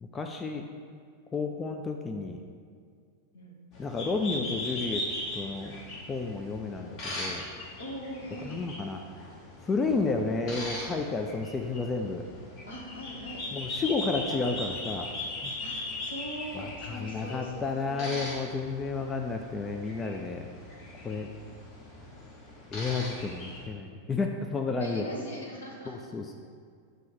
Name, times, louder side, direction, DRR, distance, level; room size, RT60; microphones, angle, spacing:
voice 1, 0.0-0.6 1.3-2.4 3.8-5.0 5.3-5.8 6.1-7.4 8.4-9.0 9.6-12.2 13.5-15.1 15.4-15.5 16.5-20.5 21.0-21.3 22.7-25.1 25.9-26.3, left 4 dB, 20° left, 4 dB, 0.4 m, -31 dB
sound 1, 3.7-23.7, left 1 dB, 40° left, 1.2 m, -39 dB
voice 2, 7.8-8.6 12.7-13.4 15.6-18.4 24.8-26.0, equal, 70° left, -2 dB, 1.2 m, -41 dB
7.6 x 3.0 x 4.9 m, 2.2 s
figure-of-eight pair, 90°, 0 cm